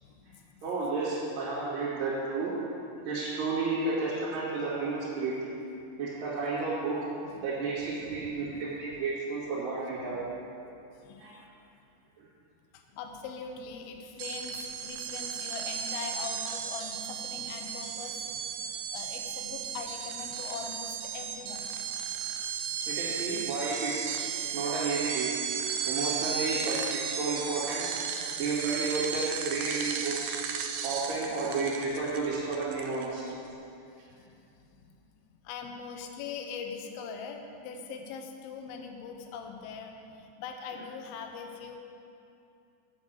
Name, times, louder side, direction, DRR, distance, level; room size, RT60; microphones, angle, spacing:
voice 1, 0.0-0.7 7.3-7.4 8.2-8.6 10.1-10.2 11.0-11.4 12.7-21.7 34.1-35.0 35.4-41.8, left 5 dB, 80° left, 3 dB, 2.2 m, -42 dB
voice 2, 0.6-2.5 3.0-5.4 6.0-7.0 7.4-10.2 11.2-11.4 12.2-12.3 22.9-24.1 24.5-25.4 25.9-27.9 28.4-30.4 30.8-33.3, right 4 dB, 55° right, -11 dB, 3.2 m, -32 dB
sound 1, 14.2-33.3, right 7 dB, 85° right, 2.5 m, -35 dB
7.7 x 7.2 x 8.1 m, 2.6 s
omnidirectional pair, 5.4 m